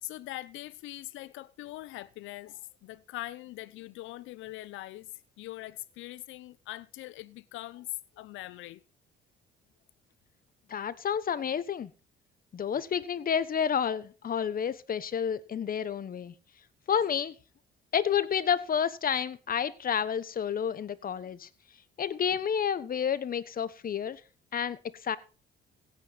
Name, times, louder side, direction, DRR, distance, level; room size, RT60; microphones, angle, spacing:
voice 1, 0.0-8.8, left 16 dB, 80° left, 0.8 m, -42 dB
voice 2, 10.7-11.9 12.5-16.3 16.9-17.3 17.9-21.5 22.0-24.2 24.5-25.2, left 8 dB, 45° left, 1.2 m, -30 dB
16.5 x 9.1 x 4.2 m
supercardioid pair, 80°, 20 cm